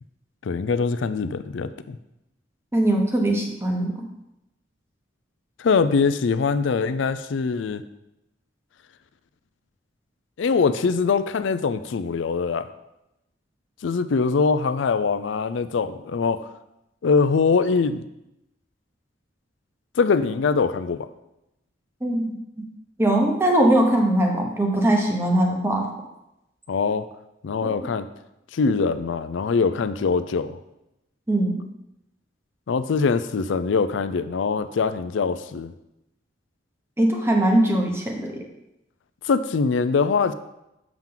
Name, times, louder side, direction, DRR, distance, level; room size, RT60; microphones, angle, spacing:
voice 1, 0.4-2.0 5.6-7.8 10.4-12.7 13.8-16.5 17.0-18.0 20.0-21.1 26.7-27.1 27.4-28.1 28.5-30.6 32.7-35.7 39.2-40.3, left 5 dB, 75° left, 12 dB, 0.4 m, -23 dB
voice 2, 2.7-3.9 22.0-22.7 23.0-25.9 27.6-27.7 31.3-31.6 37.0-38.4, right 1 dB, 15° right, 1 dB, 1.0 m, -21 dB
7.3 x 5.9 x 3.8 m, 0.89 s
head